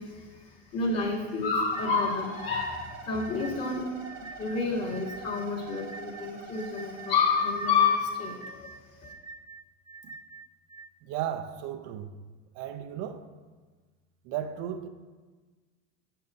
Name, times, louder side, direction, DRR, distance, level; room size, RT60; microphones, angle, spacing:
voice 1, 0.0-9.1, left 5 dB, 45° left, 2.7 m, -29 dB
sound 1, 1.7-10.9, right 4 dB, 15° right, 0.4 m, -47 dB
sound 2, 1.7-7.2, right 4 dB, 90° right, 1.6 m, -45 dB
voice 2, 11.0-12.1 12.5-13.3 14.2-14.9, right 10 dB, 60° right, 0.7 m, -35 dB
10.0 x 7.7 x 2.7 m
supercardioid pair, 100°, 36 cm